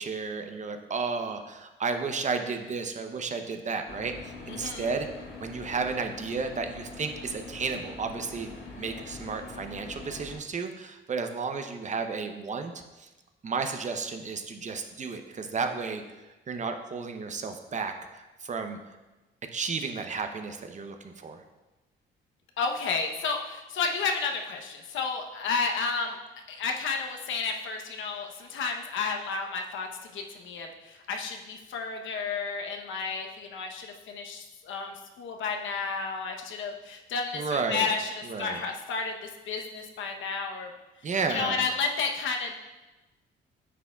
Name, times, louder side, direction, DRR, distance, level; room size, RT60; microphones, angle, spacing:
voice 1, 0.0-5.1 5.4-8.5 8.8-13.1 13.4-16.0 16.5-18.8 19.4-21.4 37.3-37.9 38.2-38.6 41.0-41.7, right 4 dB, 35° right, 6 dB, 0.7 m, -33 dB
sound 1, 3.9-10.4, left 3 dB, 55° left, 1.9 m, -43 dB
voice 2, 4.5-4.9 22.6-26.2 26.5-40.7 41.3-42.6, left 4 dB, 75° left, 3 dB, 0.9 m, -32 dB
9.3 x 6.1 x 2.3 m, 1.1 s
cardioid pair, 90°, 20 cm